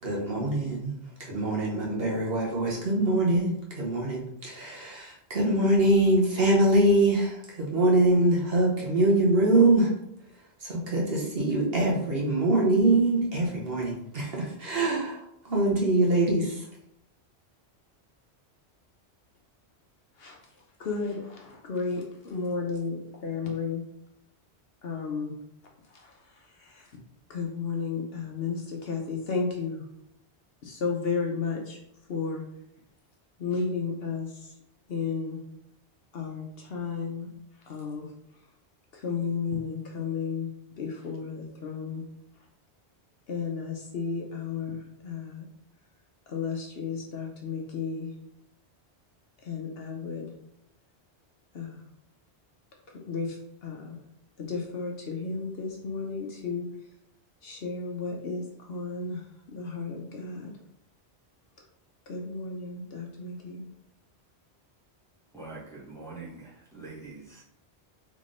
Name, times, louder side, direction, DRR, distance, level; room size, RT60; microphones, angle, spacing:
voice 1, 0.0-9.9 10.3-16.6, right 2 dB, 60° right, -3 dB, 1.2 m, -24 dB
voice 2, 20.8-23.8 24.8-25.3 25.9-27.0 27.3-29.9 30.6-31.8 32.1-32.4 33.4-34.6 34.9-35.4 36.1-37.3 37.6-38.1 38.9-40.5 40.8-42.0 43.3-45.5 46.3-48.1 49.4-50.3 51.5-51.9 52.9-54.0 54.4-56.7 57.4-60.6 62.1-63.7, left 5 dB, 65° left, 0 dB, 0.9 m, -33 dB
voice 3, 65.3-67.4, right 3 dB, 5° left, -7 dB, 1.2 m, -44 dB
3.6 x 3.6 x 3.7 m, 0.78 s
omnidirectional pair, 1.1 m